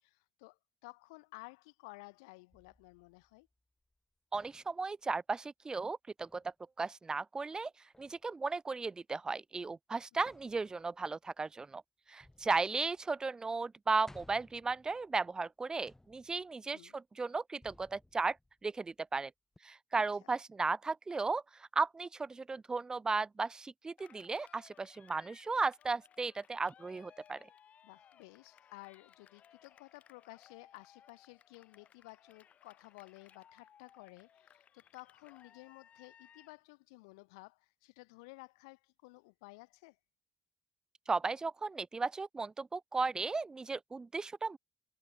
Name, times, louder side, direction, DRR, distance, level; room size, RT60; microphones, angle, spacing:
voice 1, 0.0-3.5 10.1-10.3 12.4-12.8 16.7-16.9 19.9-20.3 27.8-40.0, left 27 dB, 85° left, 2.7 m, -55 dB
sound 1, 2.5-4.0 4.3-4.9 6.2-6.5 7.9-8.3 10.3-11.1 12.2-13.2 13.5-13.6 14.1-15.4 15.9-16.7 17.6-19.0 19.6-19.7, left 1 dB, 15° left, 6.0 m, -62 dB
voice 2, 4.3-7.7 8.0-11.8 12.1-18.4 18.6-19.3 19.6-27.4 41.1-44.6, right 4 dB, 30° right, 0.3 m, -35 dB
Cheering, 24.0-36.6, left 9 dB, 60° left, 3.0 m, -62 dB
hypercardioid pair, 45°, 3 cm